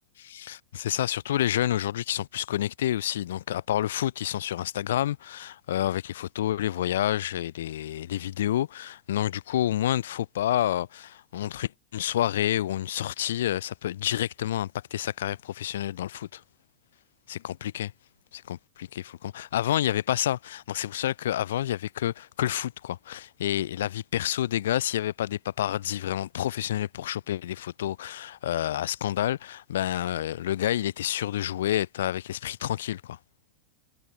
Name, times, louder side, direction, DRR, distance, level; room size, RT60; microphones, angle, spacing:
voice 1, 0.2-16.4 17.3-17.9 18.3-33.2, left 12 dB, 60° left, 3.5 m, -29 dB
figure-of-eight pair, 90°, 0 cm